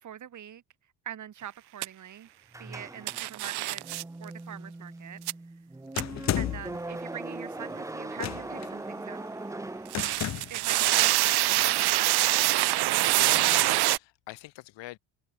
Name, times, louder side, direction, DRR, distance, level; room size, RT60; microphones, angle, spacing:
voice 1, 0.0-0.6 1.0-2.3 2.6-3.8 4.2-5.2 5.5-5.6 6.4-9.3 10.5-12.4, right 10 dB, 40° right, 2.9 m, -43 dB
sound 1, 1.8-1.9 3.1-4.0 5.3-5.4 6.0-6.1 9.9-14.0, right 17 dB, 60° right, 0.9 m, -24 dB
sound 2, 2.5-10.6, right 2 dB, 5° right, 1.1 m, -40 dB
sound 3, 6.0-6.8 8.1-8.7 9.9-10.6, left 12 dB, 40° left, 0.7 m, -32 dB
voice 2, 10.8-11.2 11.5-11.7 13.1-15.0, left 18 dB, 85° left, 2.3 m, -42 dB
cardioid pair, 145°, 43 cm